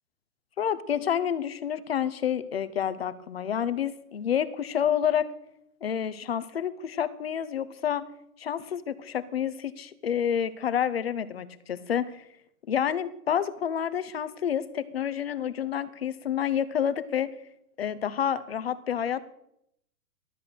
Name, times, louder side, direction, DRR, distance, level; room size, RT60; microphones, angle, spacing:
voice 1, 0.6-5.3 5.8-8.0 8.4-12.2 12.7-17.3 17.8-19.2, left 9 dB, 40° left, 15 dB, 0.7 m, -29 dB
12.5 x 8.5 x 6.6 m, 0.76 s
hypercardioid pair, 180°, 47 cm